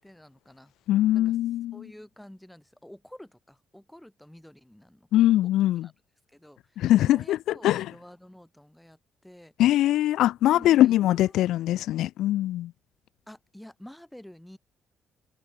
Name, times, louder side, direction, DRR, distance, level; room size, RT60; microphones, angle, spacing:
voice 1, 0.0-0.7 1.1-1.4 1.7-5.5 5.8-5.9 6.3-9.5 10.5-11.4 13.3-14.6, left 1 dB, 5° left, 7.7 m, -49 dB
voice 2, 0.9-1.8 5.1-5.9 6.8-7.4 7.6-7.9 9.6-12.7, left 14 dB, 75° left, 0.5 m, -22 dB
supercardioid pair, 65°, 0 cm